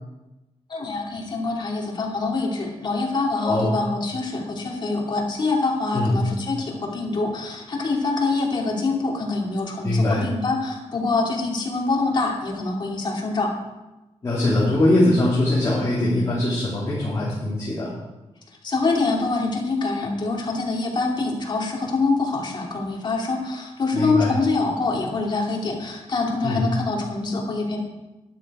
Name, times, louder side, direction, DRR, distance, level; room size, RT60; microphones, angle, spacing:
voice 1, 0.7-13.5 18.6-27.8, left 3 dB, 40° left, -1 dB, 2.7 m, -25 dB
voice 2, 9.8-10.2 14.2-17.9 23.9-24.3 26.4-26.7, left 1 dB, 25° left, -9 dB, 3.5 m, -21 dB
12.0 x 11.5 x 4.9 m, 1.0 s
wide cardioid pair, 165°, 11 cm